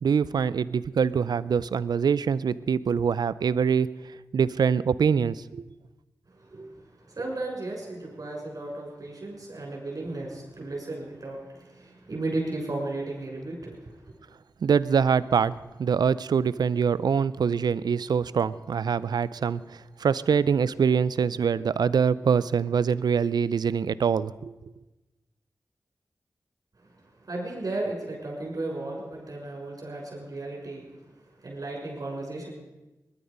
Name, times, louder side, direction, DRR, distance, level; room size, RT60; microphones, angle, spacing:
voice 1, 0.0-3.9 4.3-5.6 14.6-15.5 15.8-24.5, right 6 dB, 85° right, 18 dB, 0.5 m, -24 dB
voice 2, 6.3-14.1 26.8-32.5, right 2 dB, 60° right, -1 dB, 6.5 m, -35 dB
20.0 x 11.5 x 5.3 m, 1.1 s
cardioid pair, 40°, 7 cm